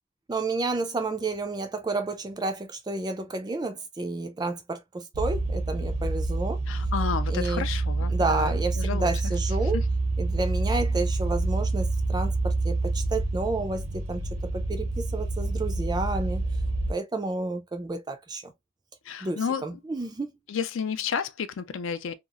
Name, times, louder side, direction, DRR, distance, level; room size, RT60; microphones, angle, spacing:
voice 1, 0.3-6.6 7.3-7.6 8.1-9.8 10.2-16.4 16.9-18.5 19.2-20.3, right 3 dB, 20° right, 0.3 m, -31 dB
sound 1, 5.1-16.9, right 2 dB, 75° right, 0.6 m, -27 dB
voice 2, 6.7-9.3 9.7-9.9 19.1-19.8 20.5-22.1, left 6 dB, 60° left, 0.4 m, -31 dB
2.9 x 2.3 x 2.3 m
head